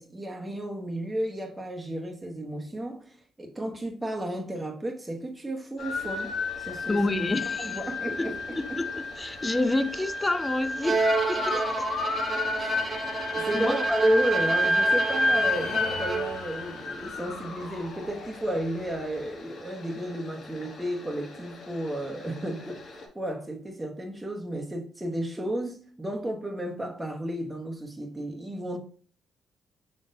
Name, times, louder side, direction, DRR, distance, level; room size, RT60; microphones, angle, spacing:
voice 1, 0.0-7.0 7.6-8.6 12.6-13.1 13.3-22.9 23.1-28.8, right 1 dB, 15° right, 0.9 m, -32 dB
sound 1, 5.8-18.9, left 2 dB, 85° left, 0.7 m, -30 dB
sound 2, 5.8-23.1, left 2 dB, 60° left, 1.1 m, -46 dB
voice 2, 6.9-7.8 8.2-11.9 13.5-13.9, left 2 dB, 20° left, 0.5 m, -29 dB
Bowed string instrument, 10.8-16.5, right 4 dB, 40° right, 0.5 m, -30 dB
5.1 x 3.6 x 2.6 m
cardioid pair, 75°, 0 cm